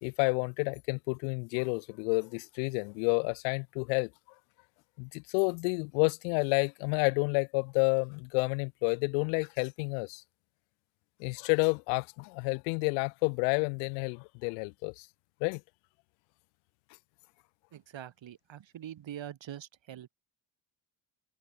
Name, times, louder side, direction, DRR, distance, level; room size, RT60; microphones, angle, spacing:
voice 1, 0.0-4.1 5.0-10.2 11.2-15.1 15.4-15.6, left 40 dB or more, 85° left, 2.1 m, -30 dB
voice 2, 17.7-20.1, right 11 dB, 60° right, 7.4 m, -44 dB
hypercardioid pair, 55°, 49 cm